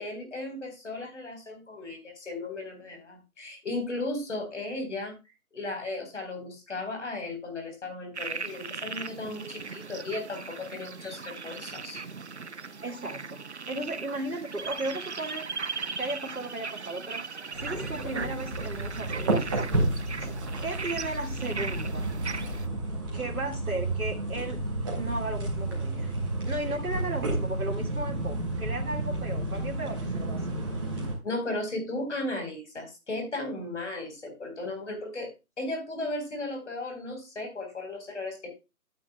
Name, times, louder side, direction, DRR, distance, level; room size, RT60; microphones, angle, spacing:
voice 1, 0.0-5.1 5.5-12.0 31.2-35.3 35.6-38.5, left 2 dB, 50° left, 5 dB, 4.1 m, -35 dB
sound 1, 8.1-22.7, right 5 dB, 50° right, 0.5 m, -38 dB
voice 2, 12.8-15.5 16.0-17.2 17.6-19.6 20.6-22.1 23.1-24.6 24.9-26.1 26.5-30.5, right 2 dB, 75° right, 1 dB, 2.1 m, -35 dB
sound 2, 17.5-31.1, right 2 dB, 15° right, 2.2 m, -31 dB
12.0 x 9.5 x 2.2 m, 0.26 s
figure-of-eight pair, 155°, 44 cm